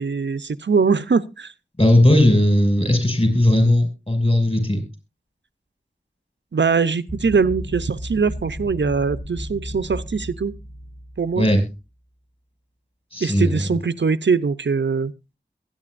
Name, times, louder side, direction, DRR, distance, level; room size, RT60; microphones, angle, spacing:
voice 1, 0.0-1.5 6.5-10.5 11.2-11.5 13.2-15.1, right 5 dB, 70° right, 0.6 m, -22 dB
voice 2, 1.8-4.8 11.4-11.6 13.1-13.8, left 1 dB, 30° left, 6.2 m, -17 dB
sound 1, 7.1-11.8, equal, 15° left, 1.2 m, -34 dB
22.0 x 9.0 x 2.5 m
wide cardioid pair, 40°, 19 cm